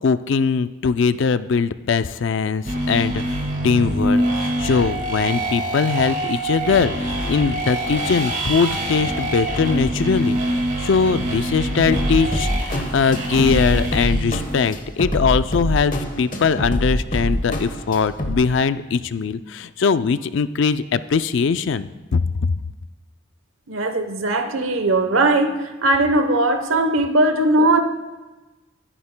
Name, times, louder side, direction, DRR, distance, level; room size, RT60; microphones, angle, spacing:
voice 1, 0.0-10.4 10.8-22.5, left 5 dB, 70° left, 0.4 m, -21 dB
sound 1, 2.6-14.8, right 1 dB, 40° right, 2.0 m, -25 dB
sound 2, 11.9-18.3, equal, 40° left, 1.1 m, -25 dB
voice 2, 23.7-27.8, right 2 dB, 90° right, 0.9 m, -19 dB
22.5 x 9.9 x 2.2 m
head